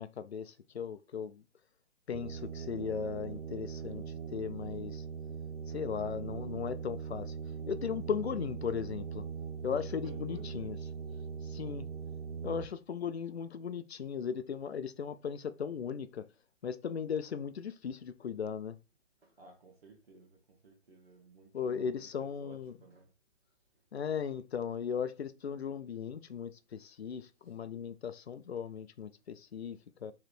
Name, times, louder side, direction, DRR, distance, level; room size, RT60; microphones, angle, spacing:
voice 1, 0.0-1.4 2.1-4.0 4.3-5.0 5.7-7.3 7.7-9.2 9.6-10.8 11.4-11.9 12.4-16.2 16.6-18.8 21.5-22.7 23.9-30.1, left 7 dB, 60° left, 0.6 m, -37 dB
sound 1, 2.1-12.7, right 6 dB, 75° right, 0.7 m, -41 dB
voice 2, 9.6-10.7 19.2-23.1 26.8-26.9 27.4-27.7, right 3 dB, 55° right, 1.3 m, -56 dB
4.9 x 3.2 x 3.1 m
hypercardioid pair, 165°, 37 cm